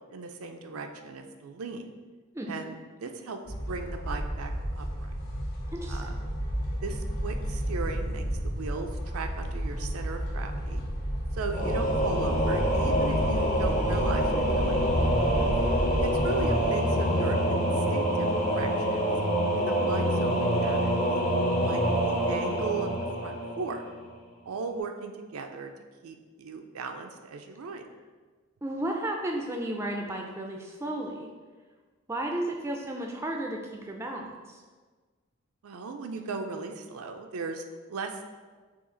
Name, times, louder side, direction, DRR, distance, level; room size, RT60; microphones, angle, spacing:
voice 1, 0.1-1.9 2.5-3.4 3.7-5.1 5.9-6.1 6.8-10.8 11.3-14.8 16.0-19.2 19.5-20.9 21.6-22.9 23.2-23.8 24.5-25.7 26.0-27.8 35.6-37.6 37.9-38.2, right 4 dB, 85° right, 5 dB, 0.4 m, -37 dB
sound 1, 3.5-16.7, equal, 60° left, 1.3 m, -32 dB
voice 2, 5.7-6.2 15.4-15.5 28.6-31.3 32.1-34.6, right 1 dB, 10° right, 1 dB, 0.3 m, -33 dB
Singing / Musical instrument, 11.5-24.1, equal, 35° left, 0.6 m, -26 dB
5.6 x 2.4 x 3.8 m, 1.4 s
head